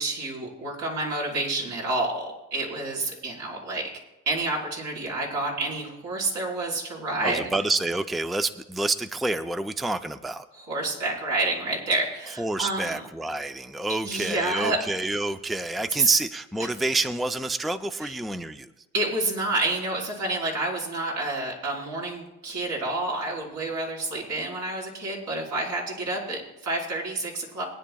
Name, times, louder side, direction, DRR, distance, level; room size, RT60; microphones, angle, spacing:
voice 1, 0.0-2.2 2.5-3.9 4.3-7.4 10.7-13.0 14.0-14.8 16.0-16.1 18.9-27.6, right 2 dB, 75° right, -3 dB, 4.5 m, -29 dB
voice 2, 7.2-10.5 12.4-18.8, right 2 dB, ahead, 9 dB, 0.5 m, -28 dB
22.0 x 10.0 x 2.3 m, 1.0 s
cardioid pair, 90°, 30 cm